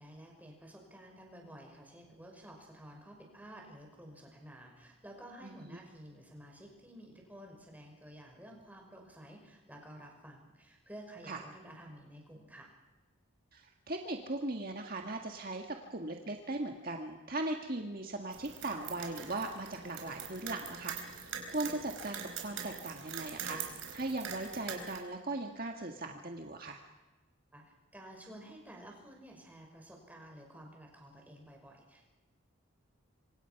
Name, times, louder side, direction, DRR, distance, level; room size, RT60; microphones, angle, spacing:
voice 1, 0.0-12.7 27.5-32.0, right 1 dB, 10° right, 1 dB, 5.6 m, -52 dB
voice 2, 5.4-5.8 11.3-11.4 13.5-26.8, right 2 dB, 45° right, 3 dB, 1.8 m, -39 dB
sound 1, 18.3-25.0, right 7 dB, 65° right, 4.7 m, -43 dB
26.5 x 26.0 x 5.9 m, 1.2 s
head